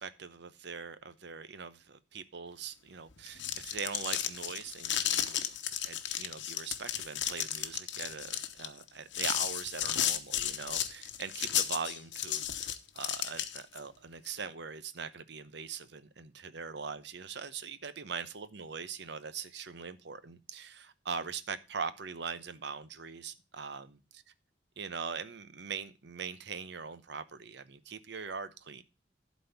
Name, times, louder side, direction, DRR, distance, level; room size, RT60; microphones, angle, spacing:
voice 1, 0.0-5.4 5.8-24.0 24.8-28.8, right 5 dB, 65° right, 0.8 m, -41 dB
sound 1, 3.2-13.8, left 10 dB, 75° left, 1.0 m, -33 dB
11.5 x 4.2 x 6.9 m
head